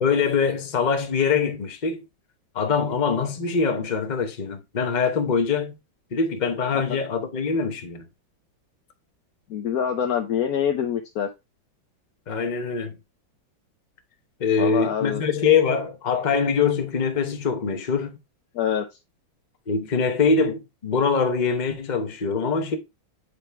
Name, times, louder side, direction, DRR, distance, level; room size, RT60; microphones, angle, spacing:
voice 1, 0.0-2.0 2.5-5.7 6.1-8.0 12.3-12.9 14.4-18.1 19.7-22.8, left 5 dB, 40° left, 0.6 m, -23 dB
voice 2, 9.5-11.3 14.6-15.2 18.5-18.9, left 8 dB, 65° left, 0.9 m, -25 dB
8.3 x 3.4 x 4.5 m
omnidirectional pair, 2.1 m